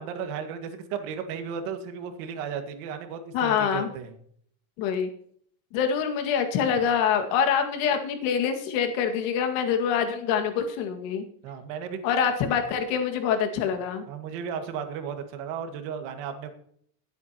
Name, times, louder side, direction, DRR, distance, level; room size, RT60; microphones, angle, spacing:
voice 1, 0.0-4.1 11.4-12.0 14.1-16.5, right 7 dB, 75° right, 7 dB, 2.0 m, -34 dB
voice 2, 3.3-3.9 4.8-5.1 5.7-11.2 12.0-14.0, left 7 dB, 80° left, 5 dB, 2.1 m, -25 dB
20.0 x 8.2 x 3.0 m, 0.63 s
cardioid pair, 180°, 40 cm